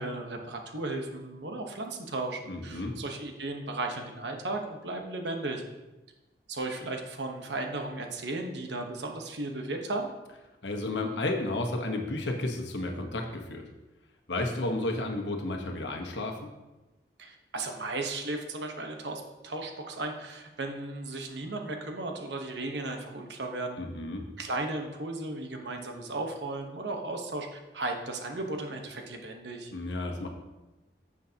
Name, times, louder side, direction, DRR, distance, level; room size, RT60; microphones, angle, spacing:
voice 1, 0.0-5.6 6.5-10.1 17.2-23.8 24.4-29.7, right 2 dB, 80° right, 3 dB, 1.1 m, -35 dB
voice 2, 2.5-3.0 10.6-13.6 14.3-16.5 23.8-24.2 29.7-30.3, left 2 dB, 85° left, 3 dB, 1.2 m, -32 dB
9.7 x 7.5 x 2.9 m, 1.1 s
head